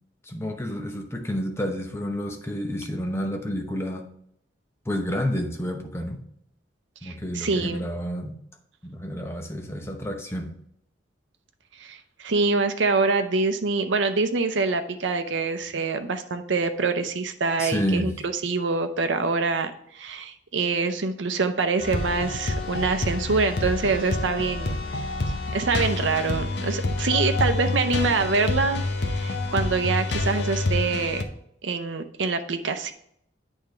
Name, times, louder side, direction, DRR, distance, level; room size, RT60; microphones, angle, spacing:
voice 1, 0.2-4.0 4.8-6.2 7.0-8.4 8.8-10.5 17.6-18.1, equal, 15° left, 3 dB, 0.9 m, -30 dB
voice 2, 7.0-7.9 11.8-24.8 25.5-31.2 31.6-32.9, right 4 dB, 85° right, 8 dB, 0.6 m, -25 dB
sound 1, 21.8-31.2, left 2 dB, 65° left, 0.8 m, -27 dB
8.6 x 3.6 x 4.4 m, 0.71 s
head